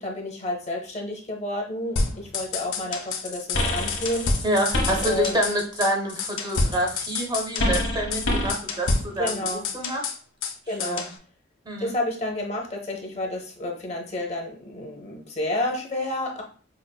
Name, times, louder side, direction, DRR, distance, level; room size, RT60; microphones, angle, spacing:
voice 1, 0.0-4.3 5.0-5.4 9.2-9.6 10.7-11.0 11.8-16.4, left 1 dB, 30° left, 1 dB, 0.7 m, -30 dB
sound 1, 2.0-3.2 3.5-3.6 3.9-5.6 5.8-5.9 6.2-7.9 8.1-8.2 8.5-10.5 10.8-11.1, left 3 dB, 75° left, 0.5 m, -28 dB
sound 2, 3.2-5.8 6.1-8.6, left 1 dB, 55° left, 1.0 m, -27 dB
voice 2, 4.4-9.4 9.7-10.0 10.8-11.1 11.7-11.9, right 1 dB, 20° right, 1 dB, 0.5 m, -27 dB
5.0 x 2.4 x 2.2 m, 0.41 s
head